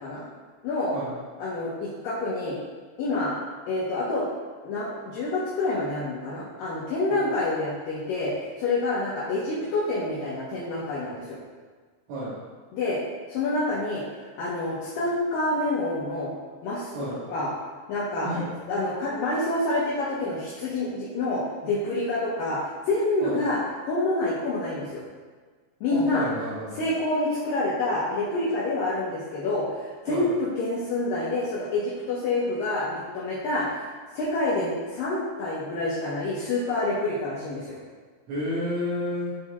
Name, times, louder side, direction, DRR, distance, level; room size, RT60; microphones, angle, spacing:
voice 1, 0.6-1.0 1.4-2.6 3.0-3.4 3.7-4.3 4.6-8.3 8.6-11.4 12.7-13.0 13.3-14.0 14.4-16.3 16.6-16.9 17.3-17.5 17.9-18.3 18.7-22.6 22.9-23.6 23.9-25.0 25.8-26.3 26.8-33.9 34.1-37.8, left 2 dB, 80° left, -8 dB, 2.0 m, -27 dB
voice 2, 12.1-12.4 16.9-17.2 18.2-18.5 23.2-23.4 25.9-26.9 30.1-30.3 38.3-39.4, equal, 75° right, -12 dB, 3.9 m, -31 dB
12.5 x 4.2 x 2.4 m, 1.5 s
omnidirectional pair, 5.4 m